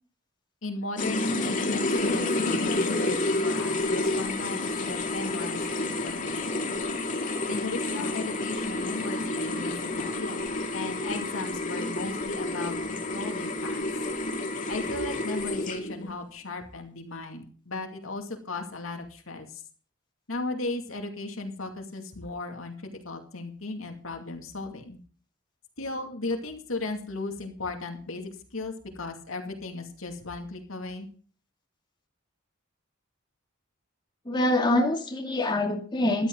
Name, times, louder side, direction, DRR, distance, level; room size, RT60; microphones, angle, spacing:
voice 1, 0.6-6.6 7.5-10.5 10.7-13.8 14.7-19.6 20.3-22.7 23.0-25.0 25.8-31.1, left 2 dB, 80° left, 4 dB, 2.5 m, -36 dB
sound 1, 1.0-16.1, left 2 dB, 40° left, 2.4 m, -29 dB
voice 2, 34.3-36.3, left 1 dB, 25° left, 1 dB, 2.5 m, -25 dB
14.0 x 12.0 x 3.9 m, 0.43 s
head